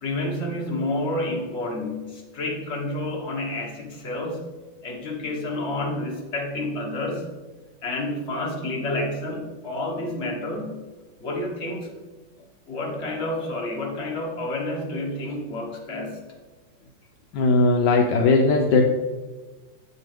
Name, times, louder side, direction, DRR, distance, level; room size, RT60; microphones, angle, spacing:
voice 1, 0.0-4.5 4.8-7.3 7.8-10.8 11.2-11.9 12.7-16.2, left 1 dB, 35° left, -1 dB, 1.6 m, -29 dB
voice 2, 17.3-18.8, left 3 dB, 70° left, 2 dB, 1.2 m, -18 dB
8.3 x 6.8 x 3.4 m, 1.2 s
omnidirectional pair, 2.1 m